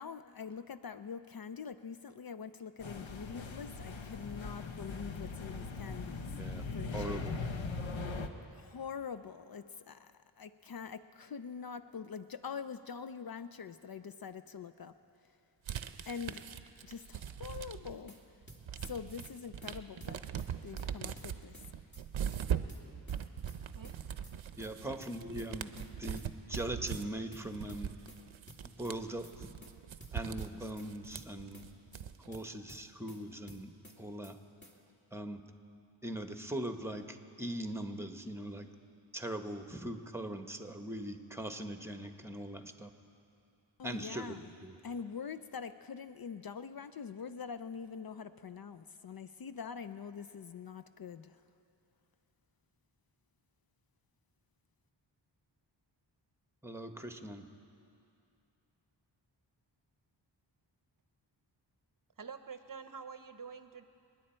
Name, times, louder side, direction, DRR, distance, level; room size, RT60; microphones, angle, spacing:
voice 1, 0.0-6.3 6.7-7.5 8.5-14.9 16.1-16.4 16.8-18.1 18.8-20.2 20.6-21.6 43.8-44.5 44.8-51.4, left 6 dB, 50° left, 12 dB, 0.5 m, -44 dB
sound 1, 2.8-8.3, left 4 dB, 75° left, 1.0 m, -40 dB
voice 2, 6.3-6.6 6.9-7.4 24.5-25.7 26.0-28.0 28.6-29.5 30.1-31.7 32.2-34.4 35.1-35.4 36.0-38.7 39.1-42.9 43.8-44.7 56.6-57.5, right 1 dB, 5° right, 7 dB, 1.1 m, -41 dB
sound 2, 15.7-18.1 18.4-32.4, right 8 dB, 80° right, 0.7 m, -41 dB
sound 3, 17.8-18.2 18.5-19.0 19.2-19.4 19.6-19.7 20.0-20.9 21.2-21.7 21.9-22.0 22.3-23.2 23.5-24.0 24.2-24.4 24.6-24.7 25.0-25.9 26.2-26.7 26.9-27.0 27.3-28.2 28.5-29.0 29.2-29.4 29.6-29.7 30.0-30.9 31.2-31.7 31.9-32.0 32.3-33.2 33.5-34.0 34.2-34.4 34.6-34.7, equal, 25° left, 2.2 m, -54 dB
voice 3, 62.2-63.8, right 6 dB, 45° right, 10 dB, 0.8 m, -47 dB
28.0 x 9.8 x 4.4 m, 2.6 s
cardioid pair, 50°, 46 cm